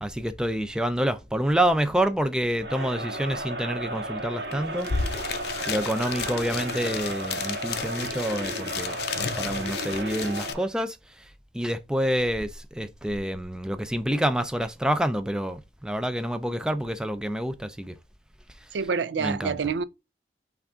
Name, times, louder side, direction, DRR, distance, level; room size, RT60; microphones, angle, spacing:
voice 1, 0.0-4.9 5.7-11.3 11.5-18.0 19.2-19.6, equal, 5° right, 0.3 m, -28 dB
Crowd, 2.6-10.7, right 2 dB, 65° right, 1.2 m, -34 dB
sound 1, 4.5-4.6 4.8-10.5, left 5 dB, 70° left, 0.5 m, -33 dB
voice 2, 18.7-19.8, right 5 dB, 90° right, 0.4 m, -27 dB
5.7 x 2.4 x 3.7 m
head